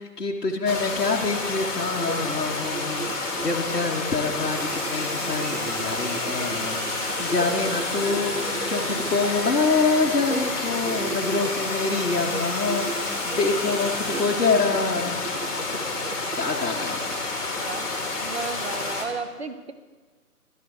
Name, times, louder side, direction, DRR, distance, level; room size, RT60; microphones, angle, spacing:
voice 1, 0.0-15.2 15.7-15.8 16.3-17.1, left 4 dB, 70° left, -1 dB, 1.6 m, -26 dB
sound 1, 0.7-19.1, left 3 dB, 50° left, 2.5 m, -30 dB
sound 2, 1.7-9.5 10.0-11.7 12.1-12.4 12.7-13.0 13.3-14.3 14.7-16.5, right 4 dB, 65° right, 1.0 m, -36 dB
sound 3, 4.5-14.8, equal, 10° right, 1.8 m, -36 dB
voice 2, 17.5-17.9 18.2-19.7, right 4 dB, 40° right, 9 dB, 0.7 m, -33 dB
13.5 x 12.5 x 3.7 m, 1.4 s
figure-of-eight pair, 165°, 48 cm